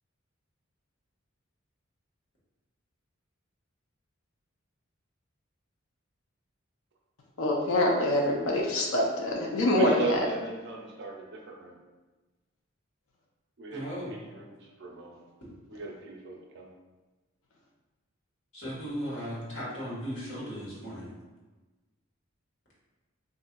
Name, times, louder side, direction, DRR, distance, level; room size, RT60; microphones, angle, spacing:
voice 1, 7.4-10.3, left 1 dB, 80° left, -1 dB, 0.5 m, -25 dB
voice 2, 9.7-11.8 13.6-15.2 15.7-16.7, right 3 dB, 60° right, 0 dB, 0.5 m, -38 dB
voice 3, 13.7-14.1 18.5-21.1, equal, 65° left, -7 dB, 1.3 m, -36 dB
3.7 x 2.5 x 2.2 m, 1.2 s
head